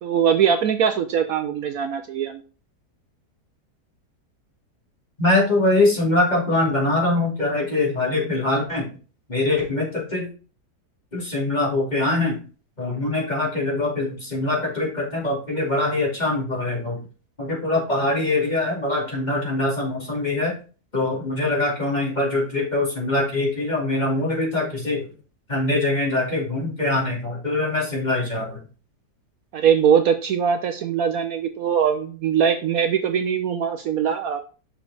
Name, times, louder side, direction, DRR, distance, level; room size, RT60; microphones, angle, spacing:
voice 1, 0.0-2.4 29.5-34.4, right 8 dB, 70° right, 7 dB, 1.0 m, -21 dB
voice 2, 5.2-8.9 9.3-10.3 11.1-12.4 12.8-17.0 17.4-20.6 20.9-25.1 25.5-28.6, left 2 dB, 25° left, -3 dB, 2.8 m, -23 dB
6.2 x 5.1 x 4.0 m, 0.36 s
omnidirectional pair, 1.8 m